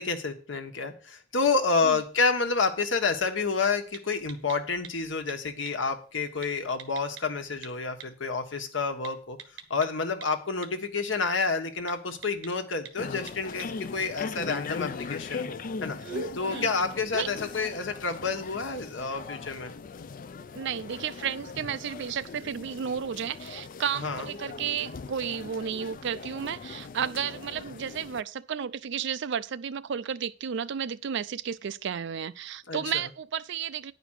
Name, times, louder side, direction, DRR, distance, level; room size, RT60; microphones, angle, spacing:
voice 1, 0.0-9.4 9.7-16.0 16.3-19.7 23.9-24.3 32.7-32.8, left 4 dB, 70° left, 1.3 m, -29 dB
sound 1, 1.6-19.8, right 4 dB, 90° right, 1.3 m, -49 dB
sound 2, 13.0-28.2, left 4 dB, 45° left, 0.4 m, -40 dB
voice 2, 20.5-33.9, right 7 dB, 65° right, 0.4 m, -32 dB
10.0 x 5.1 x 6.4 m
head